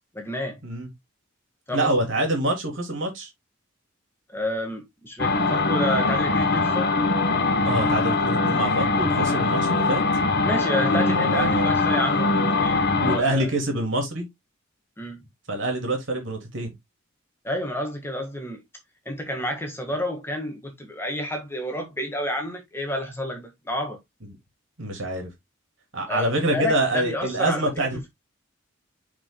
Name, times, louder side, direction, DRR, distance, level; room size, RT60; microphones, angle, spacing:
voice 1, 0.1-0.6 1.7-1.9 4.3-7.1 10.4-12.8 13.1-13.5 15.0-15.2 17.4-18.6 19.0-24.0 26.1-28.1, left 1 dB, 10° left, 1.5 m, -30 dB
voice 2, 1.7-3.3 7.6-10.0 10.8-11.7 12.4-12.5 13.0-14.3 15.5-16.7 24.8-25.3 25.9-28.1, right 1 dB, 60° right, 3.1 m, -26 dB
sound 1, 5.2-13.2, left 3 dB, 50° left, 1.2 m, -22 dB
11.0 x 4.9 x 2.2 m
head